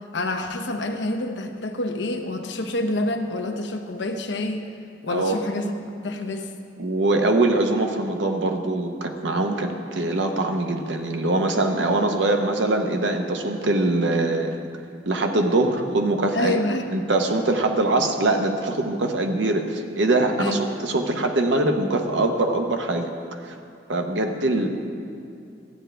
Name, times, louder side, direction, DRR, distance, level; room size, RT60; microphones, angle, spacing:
voice 1, 0.1-4.7 5.0-6.5 16.3-16.9 20.4-20.6, left 1 dB, 70° left, 5 dB, 0.8 m, -27 dB
voice 2, 5.1-5.4 6.8-14.6 15.1-16.6 16.9-23.1 23.4-23.6 23.9-24.7, right 2 dB, 75° right, 4 dB, 0.9 m, -23 dB
14.0 x 8.8 x 3.4 m, 2.6 s
head